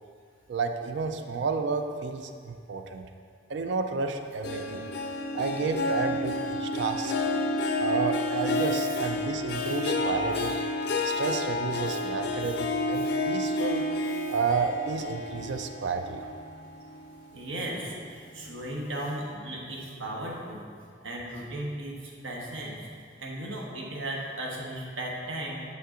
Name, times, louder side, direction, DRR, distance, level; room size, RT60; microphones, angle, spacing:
voice 1, 0.5-3.1 3.5-4.9 5.3-7.1 7.8-10.6 11.0-13.9 14.3-16.2, right 4 dB, 60° right, 6 dB, 0.4 m, -31 dB
Harp, 4.4-17.2 17.6-18.0 18.5-18.6, left 2 dB, 55° left, 0.5 m, -30 dB
voice 2, 17.3-20.6 21.0-22.8 23.2-25.6, right 1 dB, 85° right, -2 dB, 1.2 m, -36 dB
6.7 x 5.6 x 3.7 m, 2.1 s
head